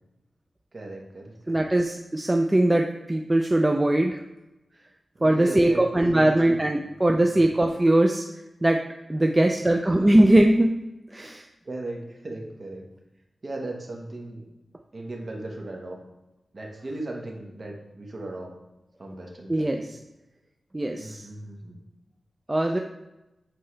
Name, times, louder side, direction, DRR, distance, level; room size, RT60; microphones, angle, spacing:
voice 1, 0.7-1.7 5.2-7.4 9.2-9.3 11.6-12.8 13.4-14.4 14.9-16.0 16.5-18.5 19.0-19.9 20.9-21.8, right 2 dB, 45° right, 1 dB, 1.2 m, -37 dB
voice 2, 1.5-4.2 5.2-8.3 8.6-8.8 9.1-10.7 11.1-11.4 19.5-19.8 20.7-21.3 22.5-22.8, right 1 dB, 20° right, 3 dB, 0.4 m, -21 dB
7.8 x 4.3 x 3.2 m, 0.97 s
wide cardioid pair, 100°, 0 cm